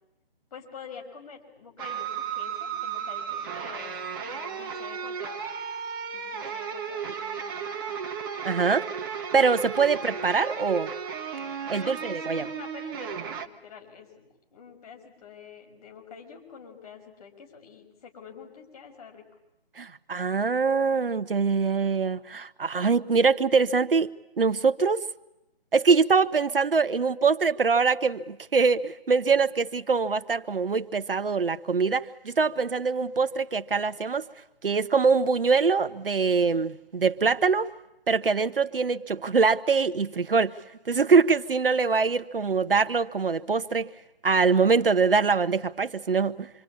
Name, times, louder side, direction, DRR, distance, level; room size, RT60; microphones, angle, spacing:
voice 1, 0.5-3.9 4.2-5.5 6.1-8.1 9.8-10.3 11.8-19.2, left 6 dB, 40° left, 2 dB, 6.2 m, -47 dB
sound 1, 1.8-13.5, right 7 dB, 20° right, 1.3 m, -34 dB
voice 2, 8.4-8.9 9.3-10.9 11.7-12.4 19.8-24.1 24.4-25.0 25.7-34.3 34.6-37.7 38.1-40.6 40.9-43.9 44.2-46.5, right 5 dB, 65° right, 11 dB, 1.1 m, -23 dB
26.5 x 26.0 x 8.6 m, 0.89 s
figure-of-eight pair, 150°, 30 cm